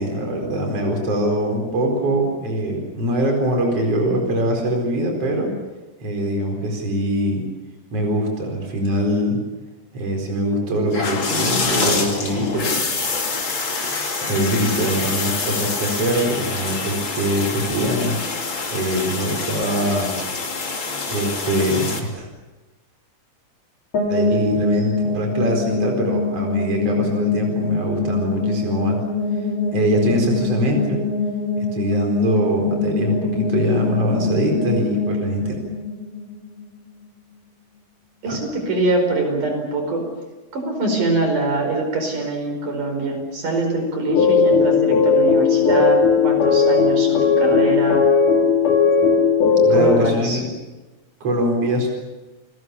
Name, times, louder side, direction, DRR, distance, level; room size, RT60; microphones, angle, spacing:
voice 1, 0.0-5.5 6.0-7.4 7.9-9.4 9.9-12.7 14.2-18.2 18.7-20.2 21.1-22.3 24.1-29.0 29.7-31.0 31.6-35.5 38.3-38.4 49.6-50.5 51.2-51.9, right 1 dB, 50° right, 2 dB, 5.6 m, -22 dB
sound 1, 10.9-22.0, left 4 dB, 40° left, 3.4 m, -26 dB
sound 2, 23.9-36.8, left 3 dB, 60° left, 7.5 m, -24 dB
voice 2, 38.2-40.0 40.5-48.1 49.7-50.4, right 2 dB, 75° right, 4 dB, 6.4 m, -23 dB
sound 3, 44.1-50.0, left 5 dB, 80° left, 4.3 m, -16 dB
29.5 x 20.5 x 7.1 m, 1.2 s
omnidirectional pair, 3.6 m